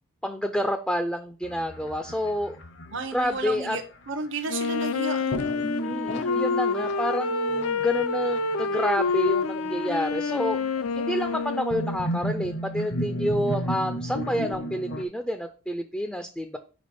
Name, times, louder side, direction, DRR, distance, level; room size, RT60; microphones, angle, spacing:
voice 1, 0.2-2.6 3.1-3.8 5.8-10.6 11.0-16.6, equal, 5° left, 7 dB, 0.4 m, -29 dB
sound 1, 1.4-4.3 5.3-15.0, equal, 55° left, 0.7 m, -34 dB
voice 2, 2.9-3.8 4.1-5.5, right 3 dB, 55° right, 6 dB, 0.7 m, -32 dB
Wind instrument woodwind instrument, 4.5-12.2, left 4 dB, 85° left, 0.5 m, -27 dB
5.1 x 4.7 x 5.2 m, 0.36 s
head